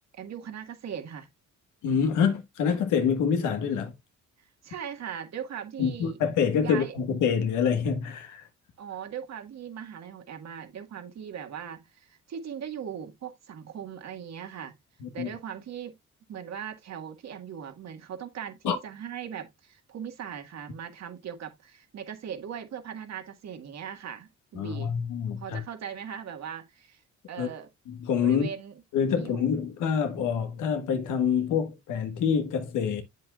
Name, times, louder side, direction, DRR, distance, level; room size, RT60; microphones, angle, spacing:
voice 1, 0.2-1.3 4.6-6.2 6.6-6.9 8.8-14.8 15.1-15.9 16.3-24.9 25.4-27.0 27.3-27.7 28.2-28.7 29.2-29.5, right 8 dB, 60° right, 1.7 m, -39 dB
voice 2, 1.8-3.9 5.8-8.5 15.0-15.3 18.6-18.8 24.5-25.6 27.4-27.5 27.9-28.5 28.9-33.0, left 7 dB, 85° left, 1.6 m, -26 dB
7.9 x 7.4 x 2.4 m
cardioid pair, 90°, 30 cm